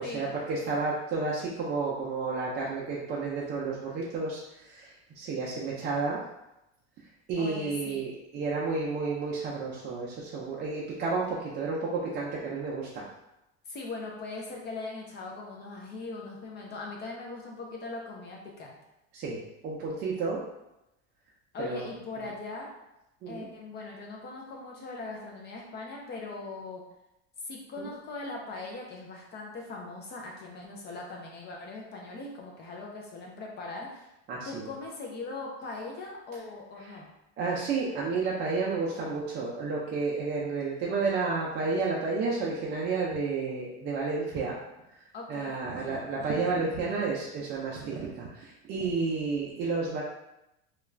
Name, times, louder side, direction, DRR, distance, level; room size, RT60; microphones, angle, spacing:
voice 1, 0.0-6.2 7.3-13.1 19.1-20.4 21.6-22.3 23.2-23.5 27.8-27.9 34.3-34.7 36.3-36.4 36.7-37.0 37.4-44.6 44.9-50.0, right 4 dB, 30° right, -5 dB, 0.4 m, -31 dB
voice 2, 7.4-8.0 13.7-18.8 21.5-22.7 23.3-26.8 27.4-34.1 34.4-37.1 45.1-45.6, left 3 dB, 30° left, -1 dB, 0.4 m, -40 dB
2.3 x 2.3 x 3.1 m, 0.90 s
supercardioid pair, 130°, 34 cm